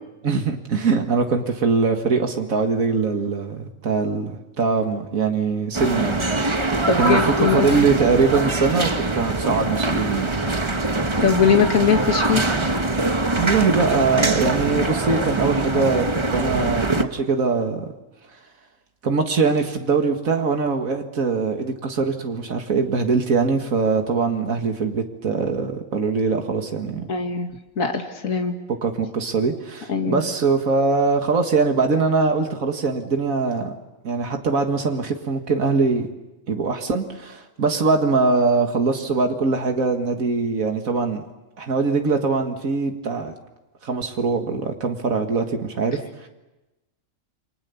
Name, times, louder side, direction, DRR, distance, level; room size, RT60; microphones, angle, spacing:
voice 1, 0.2-6.7 7.0-10.3 13.4-16.1 16.3-17.9 19.0-27.1 28.8-33.7 34.0-36.1 36.5-41.2 41.6-43.3 43.8-46.3, right 4 dB, 85° right, 4 dB, 2.2 m, -22 dB
sound 1, 5.7-17.0, right 2 dB, 20° right, 1.3 m, -23 dB
voice 2, 6.9-7.7 11.2-12.5 27.1-27.5 27.8-28.5 29.9-30.2, left 6 dB, 80° left, 4 dB, 2.4 m, -20 dB
29.0 x 25.0 x 7.0 m, 1.0 s
omnidirectional pair, 1.4 m